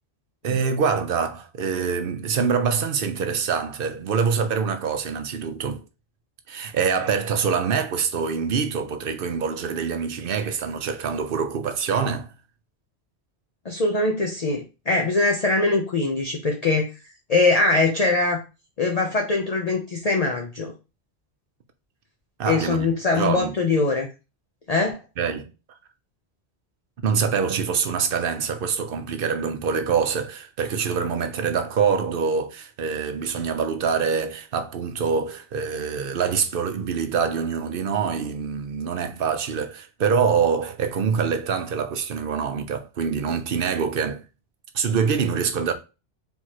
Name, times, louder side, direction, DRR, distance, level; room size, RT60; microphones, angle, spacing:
voice 1, 0.4-5.8 6.5-12.3 22.4-22.9 23.1-23.5 25.2-25.5 27.0-44.2 44.7-45.7, right 6 dB, 60° right, 0.8 m, -25 dB
voice 2, 13.6-16.9 17.3-18.4 18.8-20.7 22.5-24.1 24.7-25.0, left 3 dB, 40° left, 0.7 m, -22 dB
4.6 x 3.4 x 2.9 m
omnidirectional pair, 1.1 m